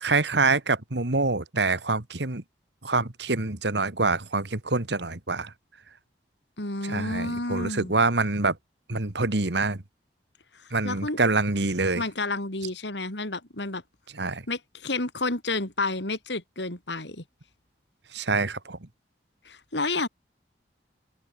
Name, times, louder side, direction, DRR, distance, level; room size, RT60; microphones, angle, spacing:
voice 1, 0.0-2.4 2.8-5.5 6.8-8.6 8.9-9.8 10.7-12.0 14.1-14.4 18.1-18.8, right 3 dB, 75° right, 2.0 m, -26 dB
voice 2, 6.6-8.0 10.5-11.2 12.0-13.8 14.5-17.2 19.5-20.1, left 2 dB, 80° left, 4.0 m, -30 dB
open air
head